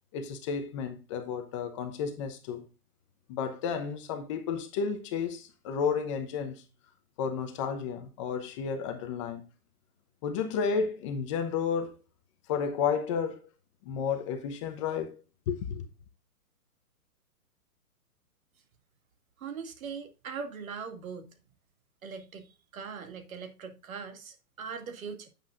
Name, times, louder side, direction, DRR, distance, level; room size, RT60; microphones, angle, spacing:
voice 1, 0.1-2.6 3.3-6.6 7.2-9.5 10.2-11.9 12.5-13.4 13.8-15.2 15.5-15.8, left 6 dB, 20° left, 0.8 m, -32 dB
voice 2, 19.4-21.3 22.0-25.3, right 5 dB, 60° right, 2.3 m, -41 dB
10.0 x 8.3 x 2.5 m
hypercardioid pair, 150°, 47 cm